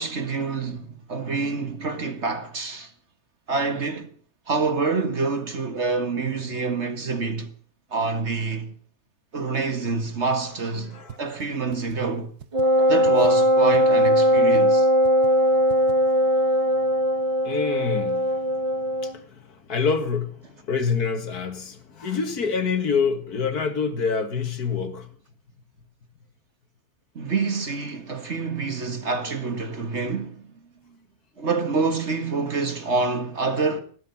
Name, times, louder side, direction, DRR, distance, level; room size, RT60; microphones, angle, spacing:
voice 1, 0.0-2.9 3.5-4.1 4.5-7.5 7.9-8.7 9.3-12.3 12.9-14.9 27.2-30.5 31.4-33.8, right 4 dB, 45° right, 2.0 m, -27 dB
sound 1, 11.1-11.2 11.4-11.5 11.7-12.0 12.4-12.6 13.0-13.3 13.7-13.8 14.1-14.2 14.4-14.6 15.0-15.3 15.7-15.9, right 8 dB, 80° right, 1.8 m, -39 dB
Wind instrument woodwind instrument, 12.5-19.2, equal, 25° right, 0.8 m, -20 dB
voice 2, 17.4-18.5 18.8-25.1, left 5 dB, 75° left, 2.3 m, -27 dB
14.0 x 13.0 x 7.2 m
omnidirectional pair, 1.7 m